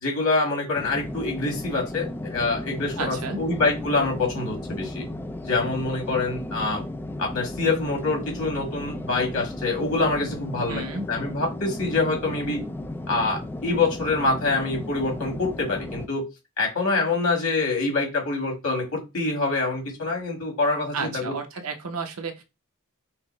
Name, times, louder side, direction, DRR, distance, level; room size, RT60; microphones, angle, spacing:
voice 1, 0.0-5.0 5.4-6.8 7.2-12.6 13.1-16.3 16.6-21.4, left 3 dB, 70° left, 0 dB, 1.8 m, -25 dB
sound 1, 0.8-16.1, left 1 dB, 10° left, 0.3 m, -35 dB
voice 2, 3.0-3.4 10.7-11.1 20.9-22.4, right 4 dB, 75° right, 7 dB, 0.7 m, -32 dB
5.8 x 2.0 x 3.1 m, 0.25 s
head